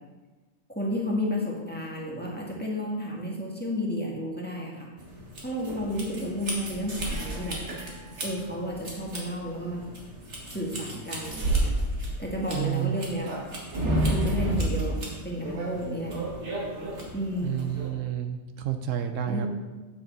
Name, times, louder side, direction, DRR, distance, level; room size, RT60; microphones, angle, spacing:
voice 1, 0.7-4.9 5.4-7.6 8.2-9.9 10.5-11.7 12.2-13.3 13.8-16.2 17.1-17.6 19.3-19.5, left 1 dB, 10° left, -3 dB, 1.5 m, -32 dB
sound 1, 5.0-17.9, right 1 dB, 60° right, 2.0 m, -32 dB
voice 2, 12.5-13.0 17.4-19.5, right 10 dB, 75° right, 7 dB, 1.0 m, -30 dB
9.1 x 7.1 x 4.0 m, 1.2 s
omnidirectional pair, 1.4 m